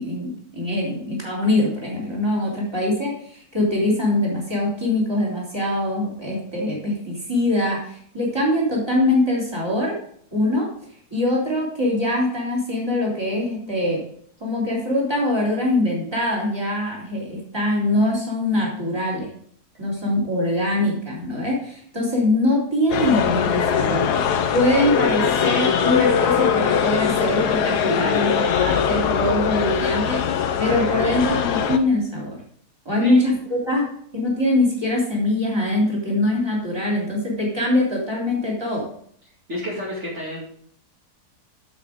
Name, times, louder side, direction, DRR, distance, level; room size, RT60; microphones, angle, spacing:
voice 1, 0.0-9.9 10.3-10.7 11.1-14.0 14.4-19.3 19.8-32.4 32.8-38.9, left 1 dB, 15° right, -4 dB, 3.2 m, -23 dB
sound 1, 22.9-31.8, left 7 dB, 80° left, 1.4 m, -21 dB
voice 2, 33.0-33.4 39.5-40.4, equal, 45° right, -6 dB, 2.5 m, -30 dB
9.1 x 7.4 x 3.6 m, 0.63 s
omnidirectional pair, 1.7 m